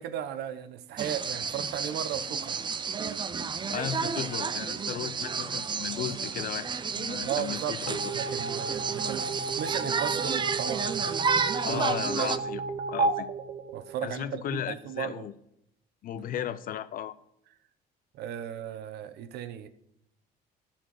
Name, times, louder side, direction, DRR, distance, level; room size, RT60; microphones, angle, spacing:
voice 1, 0.0-2.6 7.2-7.8 8.1-9.3 9.5-11.3 11.6-11.9 12.2-12.3 13.7-15.2 18.1-19.7, right 10 dB, 75° right, 0.9 m, -36 dB
sound 1, 1.0-12.4, right 5 dB, 25° right, 0.6 m, -31 dB
voice 2, 3.7-6.7 7.0-8.1 11.6-12.6 12.9-13.3 14.0-15.3 16.0-17.2, left 10 dB, 55° left, 0.6 m, -35 dB
sound 2, 7.9-14.3, right 4 dB, 50° right, 1.0 m, -33 dB
12.5 x 4.4 x 7.5 m
cardioid pair, 110°, 17 cm